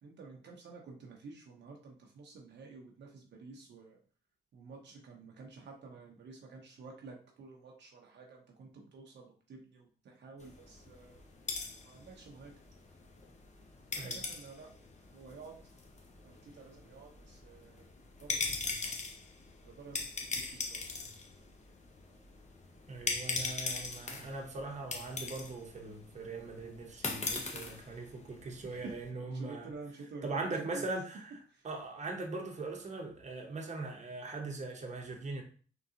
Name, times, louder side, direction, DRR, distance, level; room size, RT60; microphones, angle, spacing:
voice 1, 0.0-4.0 4.5-11.2 11.8-12.5 13.9-14.7 15.1-15.6 16.2-17.9 18.2-18.9 19.6-20.9 28.6-30.3 30.5-30.9 31.5-31.7, right 4 dB, 65° right, 0.7 m, -50 dB
sound 1, 10.4-29.1, left 3 dB, 35° left, 0.7 m, -41 dB
voice 2, 22.9-29.7 30.2-31.4 31.6-35.4, right 3 dB, 35° right, 0.9 m, -40 dB
3.7 x 2.3 x 2.7 m
cardioid pair, 75°, 19 cm